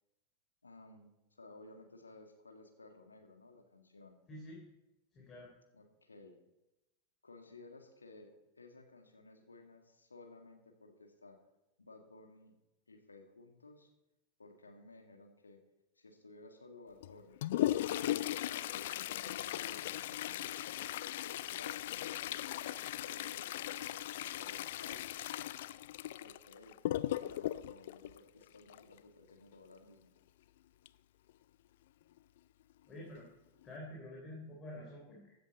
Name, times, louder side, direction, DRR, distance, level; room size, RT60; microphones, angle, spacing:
voice 1, 0.6-4.2 5.7-6.4 7.2-11.4 11.8-12.6 12.9-13.9 14.4-15.6 16.0-17.4 17.8-20.8 21.2-25.0 26.2-26.8 27.1-30.1, left 2 dB, 80° left, 4 dB, 1.9 m, -57 dB
voice 2, 4.3-4.7 5.1-5.5 32.9-33.3 33.6-35.3, left 1 dB, 25° left, -3 dB, 3.6 m, -48 dB
Toilet flush, 17.0-29.0 30.9-31.0 31.3-31.4 32.2-32.3 32.9-33.2 33.6-33.8, left 13 dB, 55° left, 0.4 m, -38 dB
15.5 x 10.0 x 4.2 m, 0.95 s
figure-of-eight pair, 90°, 0 cm